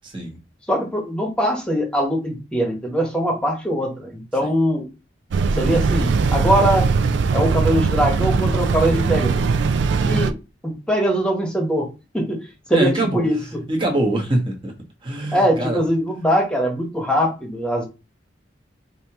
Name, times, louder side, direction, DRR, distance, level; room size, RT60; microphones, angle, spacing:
voice 1, 0.0-0.4 4.4-4.5 9.9-10.2 12.7-13.2 13.7-14.7 15.0-15.8, right 1 dB, 25° right, 1.2 m, -23 dB
voice 2, 0.7-4.9 5.6-6.9 7.3-9.4 10.0-10.4 10.6-11.9 12.1-12.4 12.7-13.3 15.3-17.9, equal, 5° left, 1.2 m, -21 dB
sound 1, 5.3-10.3, right 4 dB, 75° right, 0.4 m, -20 dB
5.2 x 2.8 x 3.0 m
head